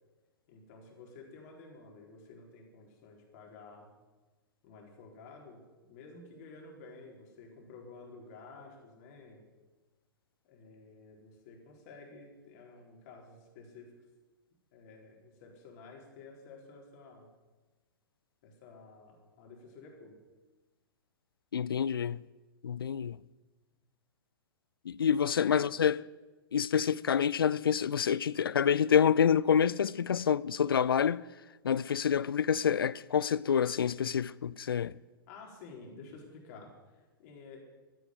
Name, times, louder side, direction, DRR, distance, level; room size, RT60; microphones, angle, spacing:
voice 1, 0.5-3.9 4.6-9.4 10.4-13.9 14.7-17.3 18.4-20.2 25.4-25.7 35.3-37.6, left 3 dB, 45° left, 4.4 m, -52 dB
voice 2, 21.5-22.2 22.6-23.2 24.8-26.0 26.5-31.2 31.6-35.0, left 8 dB, 75° left, 0.5 m, -27 dB
14.0 x 9.2 x 9.5 m
figure-of-eight pair, 110°, 12 cm